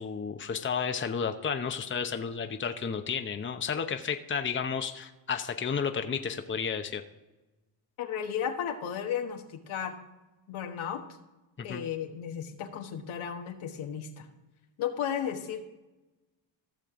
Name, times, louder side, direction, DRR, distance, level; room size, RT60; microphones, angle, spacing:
voice 1, 0.0-7.0 11.6-11.8, left 6 dB, 25° left, 7 dB, 0.8 m, -32 dB
voice 2, 8.0-10.0 10.5-11.0 11.6-14.3 14.8-15.6, left 8 dB, 75° left, 5 dB, 1.4 m, -34 dB
15.5 x 6.6 x 3.7 m, 1.1 s
cardioid pair, 75°, 49 cm